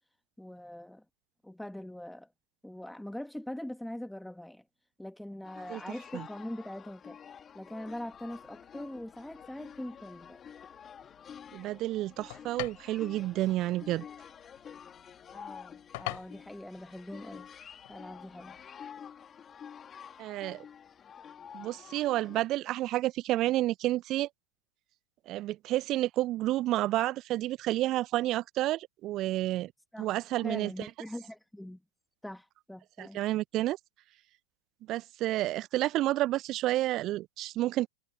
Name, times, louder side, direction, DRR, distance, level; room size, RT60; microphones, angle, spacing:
voice 1, 0.4-1.0 1.4-2.3 2.6-4.6 5.0-7.2 7.5-10.4 15.3-17.5 17.9-18.6 29.9-30.1 30.4-31.8 32.2-33.2, left 1 dB, ahead, 1.4 m, -42 dB
sound 1, 5.4-22.5, left 8 dB, 20° left, 3.1 m, -49 dB
sound 2, 7.8-18.7, left 26 dB, 50° left, 4.1 m, -48 dB
voice 2, 11.5-14.1 20.2-20.6 21.5-24.3 25.3-29.7 30.0-30.7 33.0-33.8 34.9-37.9, right 15 dB, 35° right, 0.8 m, -30 dB
figure-of-eight pair, 90°, 0 cm